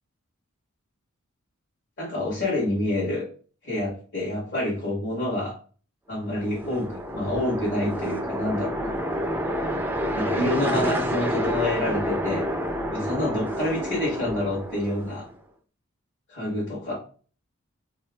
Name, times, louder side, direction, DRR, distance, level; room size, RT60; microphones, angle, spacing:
voice 1, 2.0-3.3 3.6-5.5 6.1-9.0 10.1-12.5 12.9-15.3 16.3-16.9, left 1 dB, 55° left, -5 dB, 1.1 m, -27 dB
sound 1, 6.3-15.3, equal, 10° right, 0.3 m, -29 dB
3.2 x 3.0 x 2.2 m, 0.40 s
head